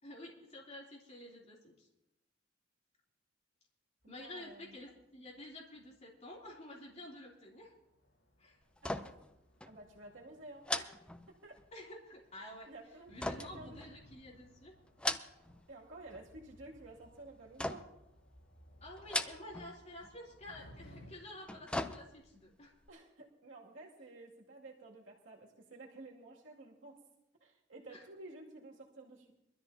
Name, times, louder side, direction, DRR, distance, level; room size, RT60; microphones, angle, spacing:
voice 1, 0.0-1.9 4.1-7.7 8.4-8.6 11.7-12.7 13.1-14.7 18.8-22.7 27.9-28.0, left 1 dB, 35° left, -4 dB, 3.1 m, -50 dB
sound 1, 4.0-5.0 5.3-5.6 6.4-6.5 7.1-7.2 7.4-11.8 12.1-21.1, equal, 80° left, 5.1 m, -60 dB
voice 2, 4.2-4.8 8.8-9.1 9.7-11.0 11.3-11.6 12.7-13.8 15.7-17.9 22.9-27.0 27.4-29.3, right 2 dB, 85° right, -2 dB, 2.4 m, -52 dB
sound 2, 8.8-9.3 9.6-9.8 10.6-11.7 13.2-14.3 14.8-15.6 15.9-16.5 17.6-18.1 19.0-19.7 20.0-20.1 21.2-22.4 22.8-22.9, left 1 dB, 5° left, 0.5 m, -39 dB
23.0 x 13.0 x 2.8 m, 0.86 s
head